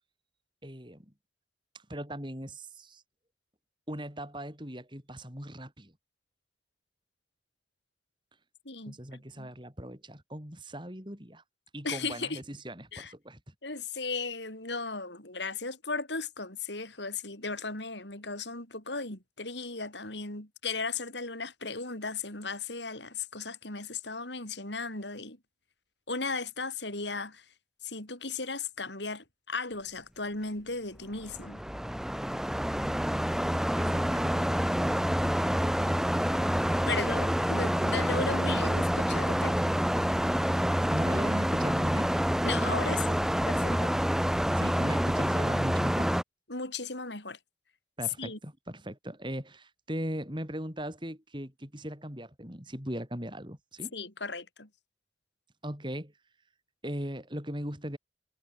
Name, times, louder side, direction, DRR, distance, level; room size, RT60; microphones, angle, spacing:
voice 1, 0.6-1.1 1.7-3.0 3.9-5.9 8.9-11.4 11.7-13.5 33.7-34.3 36.9-37.0 40.6-42.1 42.6-42.8 43.7-43.8 44.5-46.1 48.0-53.9 55.6-56.1 56.8-58.0, equal, 25° right, 7.6 m, -38 dB
voice 2, 8.6-9.5 11.8-12.4 12.9-13.1 13.6-25.4 26.1-27.4 27.8-31.6 36.8-39.5 42.4-43.2 43.5-43.9 46.5-47.4 48.2-48.4 53.9-54.7, left 4 dB, 80° left, 7.7 m, -36 dB
sound 1, 31.2-46.2, equal, 5° right, 1.1 m, -27 dB
head